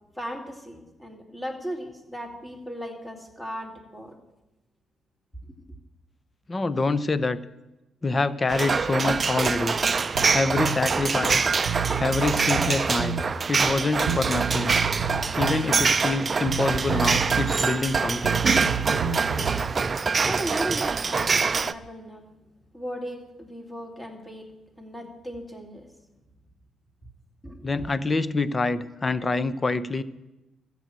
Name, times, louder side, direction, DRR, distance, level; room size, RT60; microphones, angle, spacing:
voice 1, 0.1-4.2 20.2-22.2 22.7-24.5 24.8-25.9 27.4-27.8, equal, 10° left, 3 dB, 2.7 m, -36 dB
voice 2, 6.5-7.4 8.0-9.8 10.3-11.5 12.0-13.2 13.5-14.7 15.4-18.4 27.6-30.0, left 3 dB, 25° left, 15 dB, 0.7 m, -26 dB
sound 1, 8.5-21.7, right 5 dB, 35° right, 0.5 m, -25 dB
Bass guitar, 10.1-10.8 11.3-11.4 11.7-13.3 14.1-15.7 16.5-17.6 17.9-19.7, right 7 dB, 90° right, 0.7 m, -30 dB
13.5 x 7.7 x 8.9 m, 0.99 s
cardioid pair, 90°, 0 cm